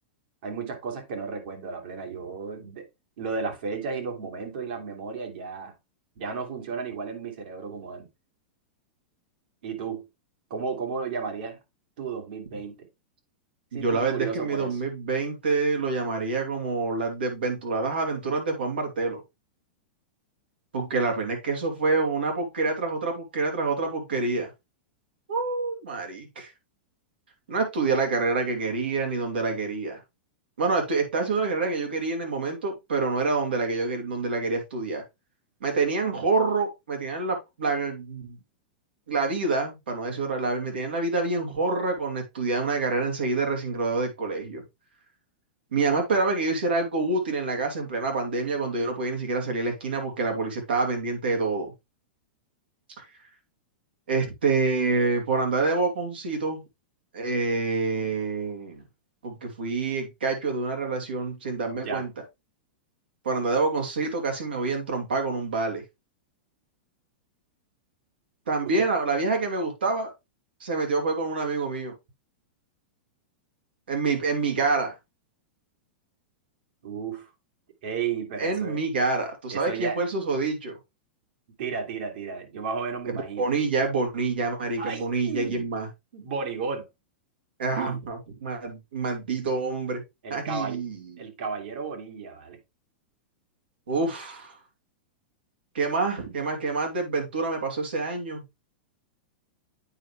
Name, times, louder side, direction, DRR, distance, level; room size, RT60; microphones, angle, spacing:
voice 1, 0.4-2.8 3.2-5.7 6.2-8.1 9.6-10.0 10.5-11.6 12.0-12.9 13.7-14.8 61.7-62.0 68.6-68.9 76.8-77.3 77.8-78.8 79.5-80.0 81.6-83.5 84.8-85.7 86.1-86.9 87.7-88.0 90.2-90.8 91.2-92.6, right 5 dB, 70° right, 2.7 m, -33 dB
voice 2, 13.7-19.2 20.7-24.5 25.3-26.5 27.5-30.0 30.6-35.0 35.6-38.4 39.1-44.6 45.7-51.7 54.1-56.6 57.1-58.8 59.2-62.1 63.2-65.8 68.5-70.1 70.6-71.9 73.9-74.9 78.4-80.7 83.1-85.9 87.6-90.0 90.3-91.0 93.9-94.6 95.7-98.4, right 3 dB, 85° right, 2.8 m, -27 dB
8.7 x 4.8 x 3.3 m
hypercardioid pair, 115°, 5 cm